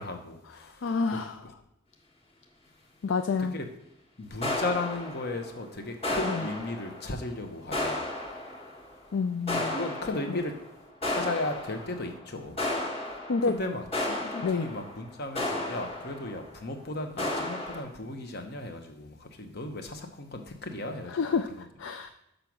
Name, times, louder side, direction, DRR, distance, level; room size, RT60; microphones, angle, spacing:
voice 1, 0.0-1.5 3.4-3.6 4.2-8.0 9.5-10.5 11.1-12.6 13.5-21.2 21.5-21.6, left 2 dB, 50° left, 5 dB, 1.0 m, -36 dB
voice 2, 0.8-1.4 3.0-3.6 6.2-6.4 9.1-9.8 10.3-10.4 13.3-13.6 14.4-14.7 21.1-22.1, left 4 dB, 65° left, 7 dB, 0.4 m, -29 dB
sound 1, 4.4-5.7 6.0-7.3 7.7-8.9 9.5-10.7 11.0-12.2 12.6-16.5 17.2-17.8, left 2 dB, 30° left, 1.6 m, -33 dB
6.7 x 5.2 x 6.0 m, 0.87 s
head